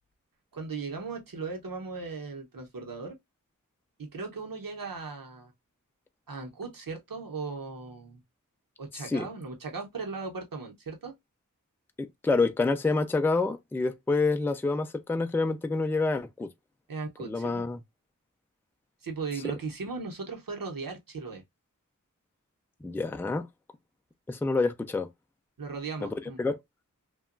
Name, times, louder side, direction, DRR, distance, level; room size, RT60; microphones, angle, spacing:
voice 1, 0.5-3.2 4.0-5.5 6.3-8.2 8.8-11.1 16.9-17.7 19.0-21.4 25.6-26.4, right 4 dB, 90° right, 0.8 m, -37 dB
voice 2, 12.0-16.5 17.2-17.8 22.8-23.5 24.3-25.1 26.0-26.1 26.4-26.5, left 3 dB, 5° left, 0.3 m, -27 dB
2.8 x 2.3 x 2.4 m
wide cardioid pair, 50°, 33 cm